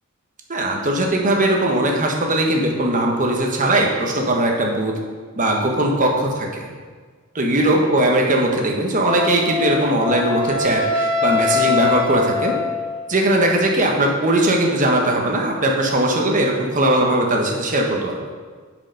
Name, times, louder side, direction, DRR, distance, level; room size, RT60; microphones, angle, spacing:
voice 1, 0.5-4.9 5.3-6.7 7.3-12.5 13.1-18.2, right 1 dB, 40° right, 0 dB, 1.1 m, -19 dB
Wind instrument woodwind instrument, 9.1-13.0, left 4 dB, 25° left, 1.2 m, -23 dB
7.5 x 4.9 x 5.3 m, 1.5 s
head